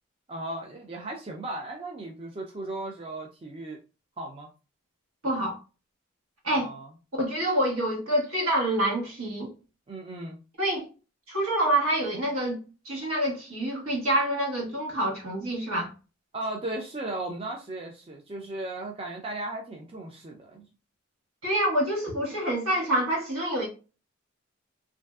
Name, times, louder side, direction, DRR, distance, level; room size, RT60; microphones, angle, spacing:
voice 1, 0.3-3.8 4.2-4.5 6.5-6.9 9.9-10.4 16.3-20.7, right 2 dB, 25° right, 0.4 m, -36 dB
voice 2, 5.2-5.6 6.4-6.7 7.2-9.5 10.6-10.9 11.3-12.6 12.8-15.9 21.4-23.7, right 1 dB, 80° right, 1.2 m, -27 dB
3.1 x 2.5 x 2.3 m
head